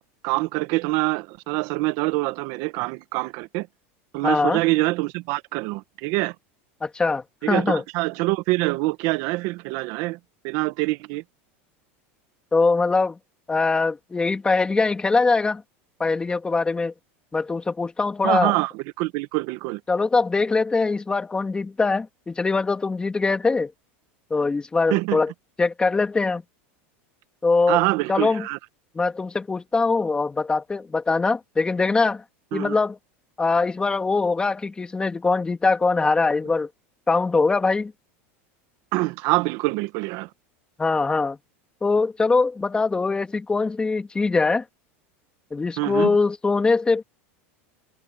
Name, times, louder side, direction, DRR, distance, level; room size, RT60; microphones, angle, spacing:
voice 1, 0.2-3.7 4.1-6.3 7.4-10.2 10.4-11.2 18.2-19.8 24.9-25.2 27.7-28.6 32.5-32.7 38.9-40.3 45.8-46.1, right 22 dB, 60° right, 1.1 m, -25 dB
voice 2, 4.2-4.6 6.8-7.8 12.5-13.2 13.5-15.6 16.0-16.9 17.3-18.5 19.9-23.7 24.3-25.3 25.6-26.4 27.4-28.5 28.9-32.2 32.5-33.0 33.4-36.7 37.1-37.9 40.8-41.4 41.8-44.6 45.5-47.0, left 3 dB, 15° left, 2.6 m, -22 dB
supercardioid pair, 130°, 7 cm